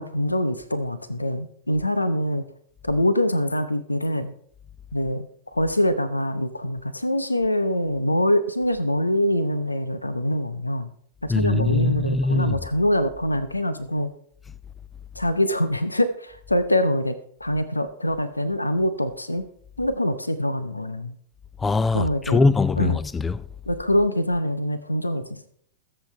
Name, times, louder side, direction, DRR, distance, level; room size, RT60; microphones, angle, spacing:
voice 1, 0.0-2.4 2.8-4.3 4.9-10.9 11.2-14.1 15.1-19.4 19.8-21.2 21.9-22.4 22.8-23.0 23.7-25.5, left 1 dB, 90° left, 0.8 m, -24 dB
voice 2, 11.3-12.5 21.6-23.4, left 3 dB, 15° left, 0.6 m, -22 dB
21.5 x 7.7 x 3.3 m
figure-of-eight pair, 95°, 0 cm